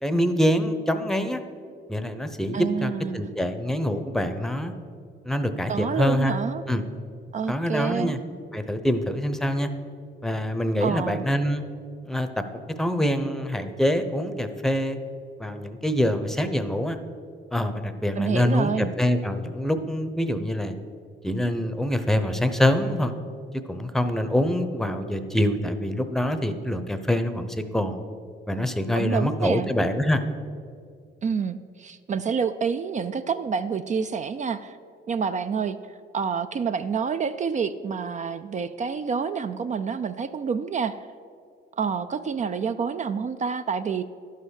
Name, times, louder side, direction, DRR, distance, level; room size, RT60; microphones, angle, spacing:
voice 1, 0.0-1.4 1.9-4.7 5.2-6.3 6.7-6.8 7.5-8.2 8.5-9.7 10.2-11.6 12.0-12.4 12.8-15.0 15.4-17.0 17.5-20.7 21.2-23.1 23.7-28.0 28.5-30.2, left 1 dB, ahead, 9 dB, 0.7 m, -25 dB
voice 2, 2.5-3.3 5.7-6.6 7.3-8.1 10.8-11.2 18.2-18.9 28.9-29.7 31.2-34.8 35.1-35.8 36.1-41.0 41.8-44.0, right 6 dB, 40° right, 11 dB, 0.4 m, -28 dB
11.5 x 5.6 x 6.4 m, 2.2 s
cardioid pair, 90°, 20 cm